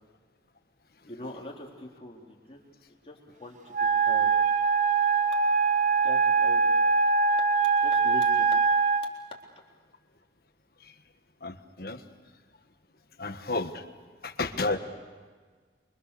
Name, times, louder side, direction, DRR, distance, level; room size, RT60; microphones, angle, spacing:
voice 1, 1.0-2.6 3.0-4.3 6.0-6.9 7.8-8.5, left 1 dB, 30° left, -1 dB, 3.8 m, -42 dB
Wind instrument woodwind instrument, 3.7-9.1, right 5 dB, 45° right, 0.8 m, -23 dB
voice 2, 11.4-12.0 13.2-13.8 14.2-14.8, left 3 dB, 55° left, 8 dB, 1.5 m, -32 dB
28.0 x 24.5 x 6.9 m, 1.5 s
head